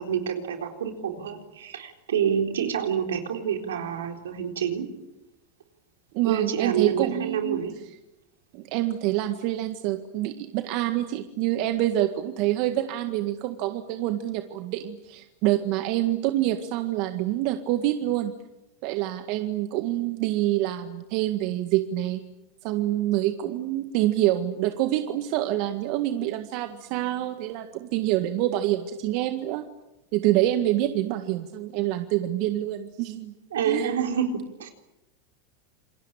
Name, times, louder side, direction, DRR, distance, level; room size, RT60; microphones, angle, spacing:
voice 1, 0.0-4.9 6.3-7.7 33.5-34.7, right 8 dB, 85° right, 4 dB, 3.9 m, -28 dB
voice 2, 6.1-7.6 8.5-18.3 18.8-22.2 22.6-29.6 30.1-33.3 33.7-33.9, right 14 dB, 60° right, 8 dB, 1.8 m, -26 dB
28.0 x 22.0 x 8.9 m, 0.94 s
hypercardioid pair, 100°, 0 cm